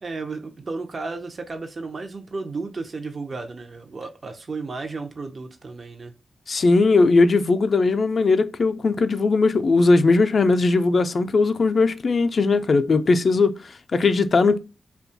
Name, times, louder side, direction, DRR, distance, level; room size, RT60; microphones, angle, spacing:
voice 1, 0.0-6.1, right 3 dB, 50° right, 0.5 m, -33 dB
voice 2, 6.5-14.6, left 3 dB, 60° left, 0.3 m, -19 dB
2.8 x 2.2 x 2.6 m
cardioid pair, 65°, 0 cm